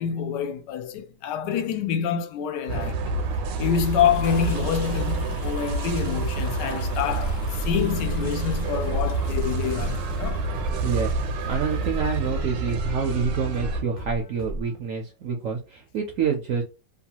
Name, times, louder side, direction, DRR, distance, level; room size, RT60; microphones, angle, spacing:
voice 1, 0.0-3.0 3.6-10.5, left 8 dB, 80° left, 1.2 m, -27 dB
sound 1, 2.7-13.8, right 3 dB, 90° right, 1.3 m, -28 dB
Toilet flush, 2.9-11.2 12.2-12.3, left 4 dB, 60° left, 1.2 m, -45 dB
sound 2, 7.1-14.8, right 1 dB, 40° left, 0.7 m, -35 dB
voice 2, 10.8-11.2 11.5-16.6, right 6 dB, 70° right, 0.7 m, -27 dB
3.0 x 2.3 x 2.8 m
omnidirectional pair, 1.9 m